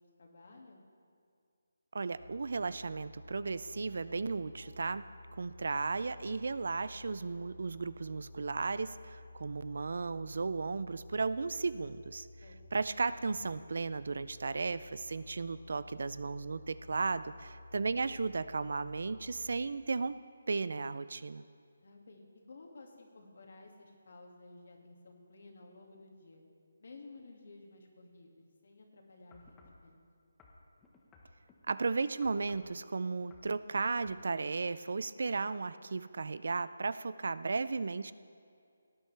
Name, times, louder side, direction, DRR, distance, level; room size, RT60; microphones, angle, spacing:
voice 1, 0.2-0.8 12.4-12.6 21.8-26.4 26.8-30.0, left 3 dB, 60° left, 1 dB, 2.1 m, -54 dB
voice 2, 1.9-5.1 5.4-12.3 12.7-20.2 20.5-21.4 31.7-38.1, right 4 dB, 65° right, 15 dB, 0.4 m, -35 dB
sound 1, 2.1-19.6, left 2 dB, 45° right, 3.0 m, -53 dB
sound 2, 29.3-29.8 30.4-31.7 32.2-32.7 33.2-33.5 34.0-34.2 34.9-35.0, left 3 dB, 10° left, 1.1 m, -59 dB
18.5 x 10.0 x 3.4 m, 2.3 s
figure-of-eight pair, 160°, 0 cm